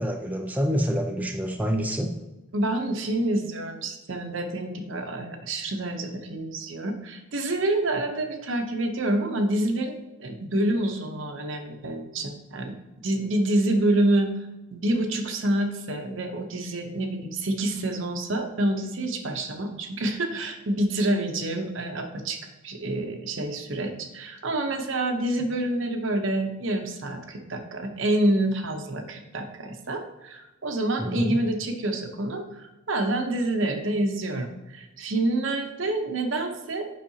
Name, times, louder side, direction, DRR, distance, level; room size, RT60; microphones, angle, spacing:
voice 1, 0.0-2.1 31.0-31.4, equal, 10° right, 2 dB, 0.4 m, -27 dB
voice 2, 2.5-12.7 13.0-14.3 14.7-36.8, right 1 dB, 65° right, 5 dB, 0.8 m, -27 dB
7.4 x 5.5 x 2.8 m, 1.0 s
head